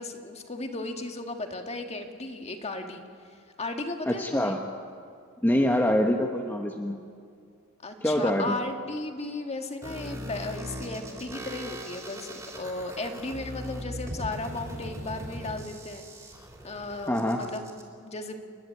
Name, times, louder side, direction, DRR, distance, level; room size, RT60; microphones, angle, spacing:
voice 1, 0.0-3.0 3.6-4.6 7.8-16.0 16.6-17.7 18.0-18.4, left 2 dB, 30° left, 5 dB, 1.9 m, -35 dB
voice 2, 4.1-4.6 5.4-6.9 8.0-8.5 17.1-17.4, left 1 dB, 10° left, 2 dB, 1.2 m, -25 dB
sound 1, 9.8-17.8, equal, 15° right, 3.5 m, -39 dB
29.5 x 11.5 x 9.5 m, 2.3 s
head